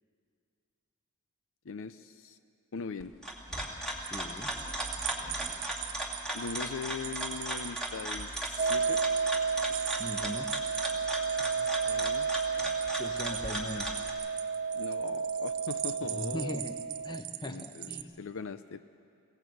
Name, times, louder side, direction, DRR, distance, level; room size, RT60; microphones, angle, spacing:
voice 1, 1.6-2.4 2.7-3.1 6.3-9.0 11.4-12.3 14.7-16.6 17.4-17.9 18.2-18.9, left 5 dB, 65° left, 11 dB, 0.5 m, -40 dB
sound 1, 3.0-14.1, right 1 dB, ahead, 2.4 m, -37 dB
voice 2, 4.0-4.5 10.0-10.5 12.9-13.9 16.0-16.7 17.0-18.1, equal, 20° left, 7 dB, 1.1 m, -39 dB
sound 2, 4.0-18.0, right 14 dB, 75° right, 0.8 m, -42 dB
sound 3, 8.6-17.2, right 5 dB, 30° right, 0.4 m, -32 dB
22.5 x 17.5 x 7.9 m, 2.5 s
head